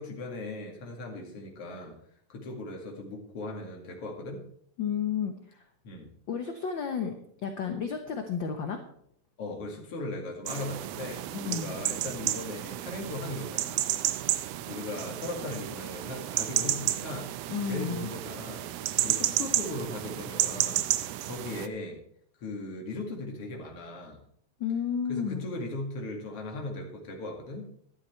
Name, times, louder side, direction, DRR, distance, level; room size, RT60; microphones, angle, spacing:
voice 1, 0.0-2.0 2.3-4.4 5.8-6.1 9.4-14.0 14.7-17.3 17.6-18.7 19.0-20.9 21.2-22.0 22.4-24.2 25.1-27.7, left 2 dB, 50° left, 1 dB, 3.1 m, -38 dB
voice 2, 4.8-5.6 6.3-7.2 7.4-8.8 11.3-11.8 17.5-18.1 24.6-25.5, left 7 dB, 70° left, 5 dB, 1.1 m, -32 dB
sound 1, 10.5-21.7, right 13 dB, 85° right, 1.4 m, -31 dB
13.0 x 11.5 x 4.5 m, 0.66 s
omnidirectional pair, 3.6 m